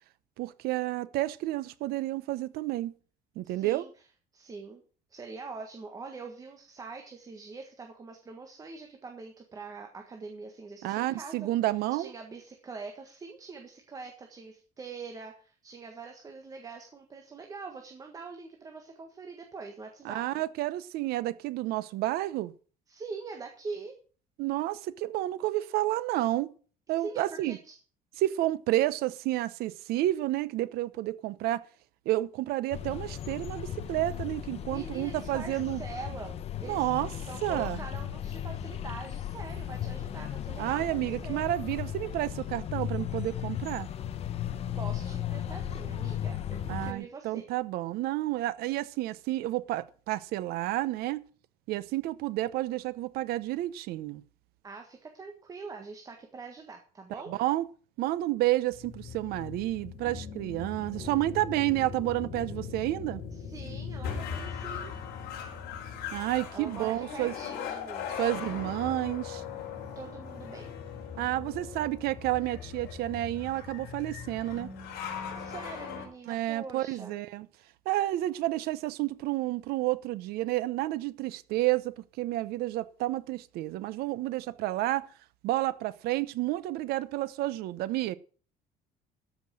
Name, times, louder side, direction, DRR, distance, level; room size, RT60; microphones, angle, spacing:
voice 1, 0.4-2.9 3.4-3.8 10.8-12.1 20.0-22.5 24.4-26.5 26.9-27.6 28.2-31.6 32.1-35.8 36.7-37.1 37.4-37.8 40.6-43.9 46.7-51.3 51.7-54.2 57.3-57.7 58.0-63.2 66.1-67.3 68.2-69.4 71.2-74.7 76.3-77.5 77.9-85.0 85.4-88.2, right 16 dB, 65° right, 0.9 m, -30 dB
voice 2, 3.4-3.9 4.3-4.8 5.1-11.5 12.0-20.4 22.9-24.0 26.9-27.7 34.6-36.9 37.3-41.4 44.7-47.5 54.6-57.3 63.3-64.9 66.5-68.1 69.9-70.7 75.4-77.2, right 4 dB, 20° right, 1.5 m, -44 dB
sound 1, 32.7-46.9, left 10 dB, 35° left, 0.9 m, -36 dB
sound 2, 58.7-76.1, left 7 dB, 70° left, 4.2 m, -39 dB
13.5 x 6.1 x 7.6 m
cardioid pair, 175°, 17 cm